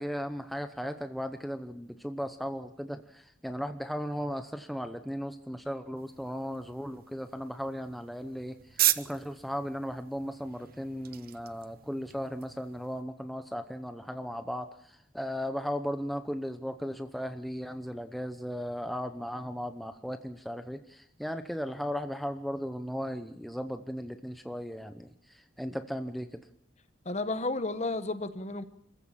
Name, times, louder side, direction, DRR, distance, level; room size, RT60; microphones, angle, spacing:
voice 1, 0.0-26.4, equal, ahead, 8 dB, 0.8 m, -36 dB
sound 1, 6.0-13.0, right 14 dB, 50° right, 0.7 m, -36 dB
voice 2, 27.0-28.6, left 2 dB, 35° left, 11 dB, 1.1 m, -32 dB
27.0 x 15.0 x 7.4 m, 0.74 s
head